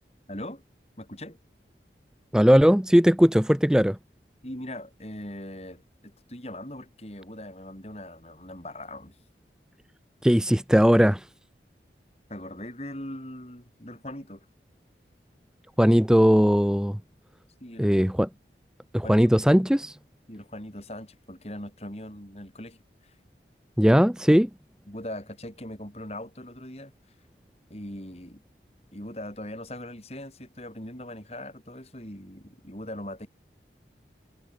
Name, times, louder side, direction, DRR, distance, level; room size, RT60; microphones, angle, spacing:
voice 1, 0.3-0.6 1.0-1.4 4.4-9.2 12.3-14.5 17.6-17.9 19.0-19.2 20.3-23.1 23.9-24.0 24.9-26.9 27.7-28.4 28.9-33.3, left 1 dB, 35° left, 5.7 m, -40 dB
voice 2, 2.3-4.0 10.2-11.2 15.8-17.0 17.8-18.3 18.9-20.0 23.8-24.5, equal, 5° right, 0.7 m, -19 dB
head